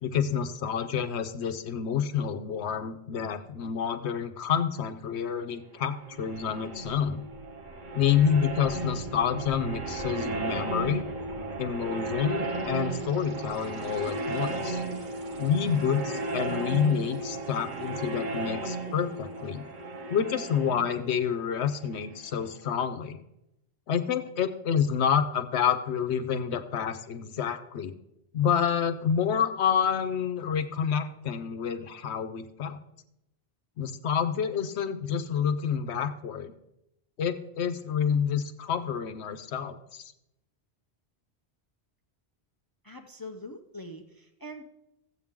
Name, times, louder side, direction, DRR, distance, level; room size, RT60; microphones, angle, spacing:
voice 1, 0.0-7.2 7.9-11.0 11.6-14.8 15.4-19.7 20.1-23.2 23.9-27.9 28.3-32.8 33.8-36.5 37.2-40.1, left 7 dB, 80° left, 10 dB, 1.0 m, -28 dB
sound 1, 5.9-22.5, right 2 dB, 45° right, 1.1 m, -35 dB
voice 2, 42.8-44.6, left 1 dB, 25° left, 6 dB, 0.5 m, -43 dB
14.0 x 8.1 x 3.6 m, 0.86 s
omnidirectional pair, 1.1 m